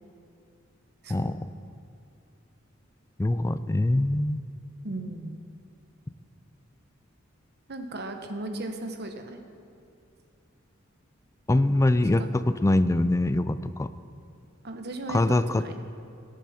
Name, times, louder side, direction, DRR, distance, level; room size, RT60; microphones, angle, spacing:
voice 1, 3.2-4.4 11.5-13.9 15.1-15.6, left 1 dB, 15° left, 13 dB, 0.3 m, -23 dB
voice 2, 4.8-5.4 7.7-9.4 12.2-12.3 14.6-15.8, right 2 dB, 55° right, 5 dB, 1.1 m, -36 dB
20.0 x 8.3 x 4.3 m, 2.5 s
head